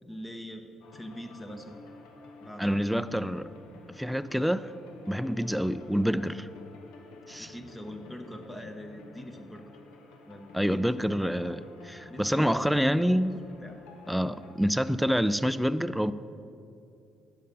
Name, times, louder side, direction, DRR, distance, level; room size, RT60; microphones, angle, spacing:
voice 1, 0.0-1.8 2.4-2.9 7.4-9.6 10.3-11.2 12.1-13.2 13.6-13.8, equal, 20° left, 1.0 m, -43 dB
sound 1, 0.8-14.5, left 3 dB, 80° left, 0.9 m, -51 dB
voice 2, 2.6-3.5 3.9-4.7 5.1-6.5 7.3-7.5 10.5-13.4 14.1-16.1, equal, ahead, 0.4 m, -27 dB
10.5 x 5.3 x 6.7 m
hypercardioid pair, 55°, 0 cm